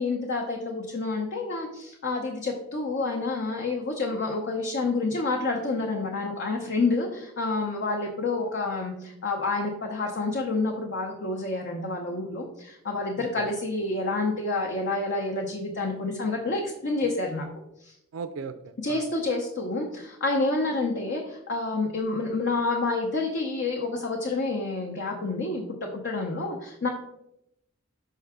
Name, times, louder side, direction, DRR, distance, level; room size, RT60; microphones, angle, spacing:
voice 1, 0.0-17.5 17.8-17.9 18.8-26.9, left 3 dB, 60° left, 1 dB, 0.8 m, -28 dB
voice 2, 13.2-13.5 18.1-19.1, right 5 dB, 85° right, 10 dB, 0.4 m, -38 dB
5.7 x 5.4 x 3.6 m, 0.82 s
head